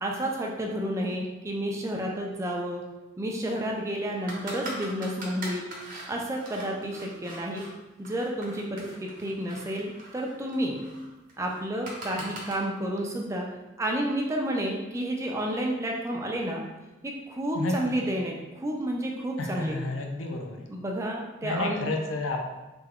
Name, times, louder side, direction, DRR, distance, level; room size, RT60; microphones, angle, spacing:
voice 1, 0.0-2.8 3.2-5.7 6.1-7.6 8.0-10.8 11.4-13.5 13.8-16.6 17.0-19.8 20.7-21.9, right 1 dB, 15° right, -1 dB, 0.4 m, -30 dB
sound 1, 4.3-7.7 8.0-12.5, right 2 dB, 45° right, 0.8 m, -42 dB
voice 2, 19.4-20.7 21.4-22.4, left 2 dB, 80° left, 2 dB, 0.5 m, -30 dB
3.4 x 2.2 x 3.5 m, 1.1 s
head